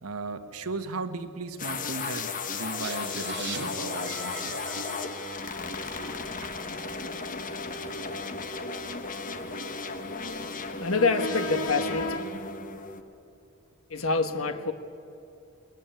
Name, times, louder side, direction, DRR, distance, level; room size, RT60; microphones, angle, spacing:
voice 1, 0.0-4.6, right 3 dB, 85° right, 8 dB, 1.4 m, -36 dB
sound 1, 1.6-13.0, left 4 dB, 40° left, 1.3 m, -35 dB
sound 2, 2.8-6.6, right 4 dB, 50° right, 2.2 m, -42 dB
Knock, 5.5-6.7, right 3 dB, 65° right, 3.7 m, -52 dB
voice 2, 10.8-12.2 13.9-14.7, left 3 dB, 70° left, 8 dB, 1.5 m, -26 dB
21.5 x 20.0 x 9.1 m, 2.7 s
head